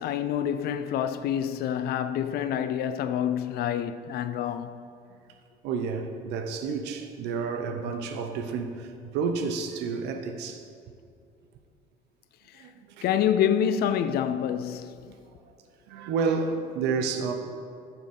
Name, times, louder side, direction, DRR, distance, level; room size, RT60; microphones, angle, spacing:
voice 1, 0.0-4.7 13.0-14.9, left 9 dB, 65° left, 0.4 m, -27 dB
voice 2, 5.6-10.6 12.6-13.0 14.0-14.1 15.1-15.2 15.9-17.3, right 5 dB, 90° right, 0.7 m, -30 dB
7.9 x 4.5 x 5.3 m
cardioid pair, 110°, 17 cm